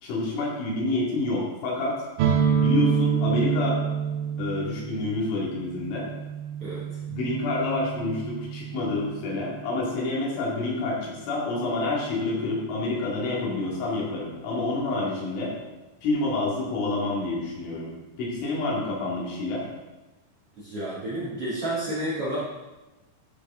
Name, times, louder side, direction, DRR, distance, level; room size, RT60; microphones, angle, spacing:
voice 1, 0.0-2.0 2.6-3.8 4.4-6.1 7.1-15.6 16.0-17.9 18.2-19.7, left 2 dB, 80° left, -4 dB, 4.6 m, -28 dB
sound 1, 2.2-9.8, right 7 dB, 80° right, 3.3 m, -28 dB
voice 2, 6.6-7.0 20.6-22.4, right 1 dB, 45° right, -8 dB, 2.2 m, -31 dB
13.5 x 6.6 x 3.6 m, 1.1 s
omnidirectional pair, 5.5 m